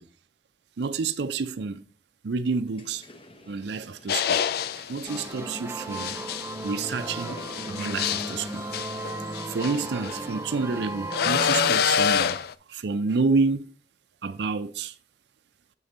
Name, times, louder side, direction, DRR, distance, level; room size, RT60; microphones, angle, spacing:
voice 1, 0.8-1.8 2.2-3.0 3.5-4.4 4.8-6.2 6.6-7.4 7.7-8.7 9.5-12.4 12.7-13.7 14.2-14.9, right 4 dB, 70° right, 0.5 m, -29 dB
sound 1, 2.6-7.7, left 2 dB, 30° left, 0.7 m, -49 dB
sound 2, 4.1-5.2 5.9-10.2 11.1-12.5, left 8 dB, 60° left, 0.3 m, -27 dB
sound 3, 5.1-11.8, right 2 dB, 15° right, 0.5 m, -36 dB
6.9 x 5.1 x 4.1 m
head